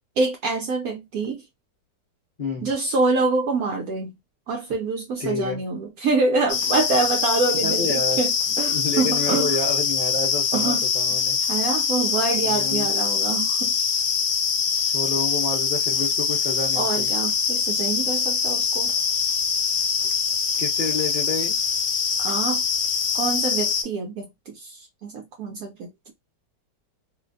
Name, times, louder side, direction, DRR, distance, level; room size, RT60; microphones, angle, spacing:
voice 1, 0.2-1.4 2.6-4.1 4.5-9.5 10.5-10.8 11.5-13.8 16.8-18.9 22.2-22.6 23.1-26.1, right 3 dB, 70° right, 0.9 m, -26 dB
voice 2, 2.4-2.7 5.2-5.6 7.5-8.2 8.7-11.4 12.4-12.9 14.7-17.1 20.6-21.6, left 3 dB, 35° left, 0.8 m, -29 dB
sound 1, 6.5-23.8, left 6 dB, 75° left, 1.2 m, -23 dB
3.0 x 2.0 x 2.6 m
omnidirectional pair, 1.9 m